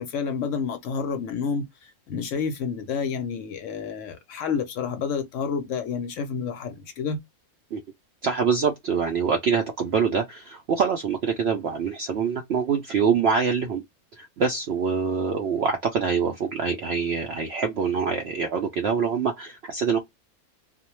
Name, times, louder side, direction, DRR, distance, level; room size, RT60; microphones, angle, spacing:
voice 1, 0.0-7.2, left 6 dB, 65° left, 0.8 m, -29 dB
voice 2, 8.2-13.8 14.2-20.0, right 6 dB, 70° right, 0.6 m, -25 dB
2.3 x 2.1 x 2.9 m
omnidirectional pair, 1.5 m